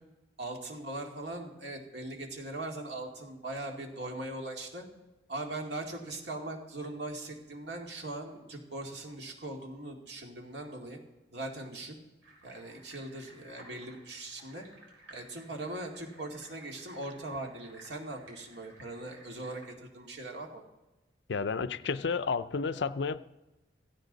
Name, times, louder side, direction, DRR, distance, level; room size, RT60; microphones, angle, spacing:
voice 1, 0.4-4.8 5.3-11.0 11.3-12.0 12.4-14.6 15.1-20.6, right 2 dB, 65° right, 2 dB, 2.3 m, -40 dB
sound 1, 12.2-19.7, right 2 dB, 90° right, 4.0 m, -56 dB
voice 2, 21.3-23.2, left 5 dB, 70° left, 13 dB, 0.5 m, -31 dB
16.5 x 15.5 x 4.0 m, 1.1 s
head